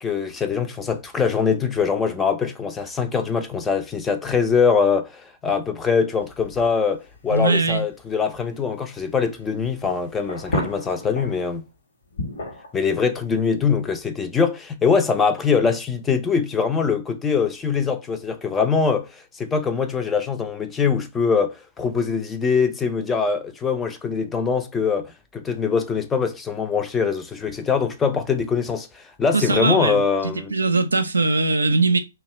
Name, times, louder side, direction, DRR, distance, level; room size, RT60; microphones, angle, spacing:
voice 1, 0.0-11.6 12.7-30.5, left 5 dB, 15° left, 0.4 m, -23 dB
sound 1, 6.2-11.6 12.1-12.8, left 2 dB, 70° left, 1.1 m, -33 dB
voice 2, 7.3-7.8 29.3-32.0, right 3 dB, 85° right, 0.5 m, -21 dB
2.6 x 2.2 x 3.1 m
hypercardioid pair, 125°, 0 cm